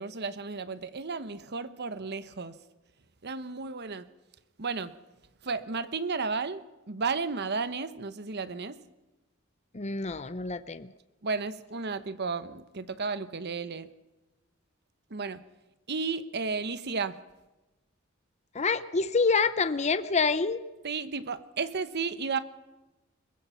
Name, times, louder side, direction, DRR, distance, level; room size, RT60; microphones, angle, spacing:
voice 1, 0.0-2.6 3.2-4.1 4.6-4.9 5.4-8.8 11.2-13.9 15.1-15.4 15.9-17.2 20.8-22.4, right 4 dB, 50° right, 13 dB, 1.0 m, -33 dB
voice 2, 9.7-10.9 18.5-20.6, left 4 dB, 35° left, 12 dB, 0.8 m, -27 dB
22.5 x 21.0 x 5.7 m, 1.1 s
head